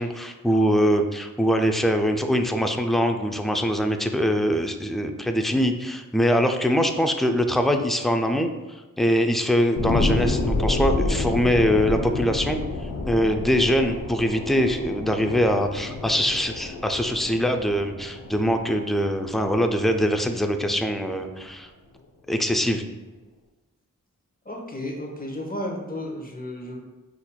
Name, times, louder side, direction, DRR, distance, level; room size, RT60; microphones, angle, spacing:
voice 1, 0.0-8.5 9.0-12.6 13.1-21.7 22.3-22.8, equal, ahead, 5 dB, 0.3 m, -23 dB
sound 1, 9.8-20.8 21.2-21.3, left 2 dB, 70° left, 0.6 m, -29 dB
voice 2, 24.4-26.8, left 1 dB, 25° left, 0 dB, 0.8 m, -33 dB
5.6 x 2.5 x 2.2 m, 1.2 s
cardioid pair, 45°, 33 cm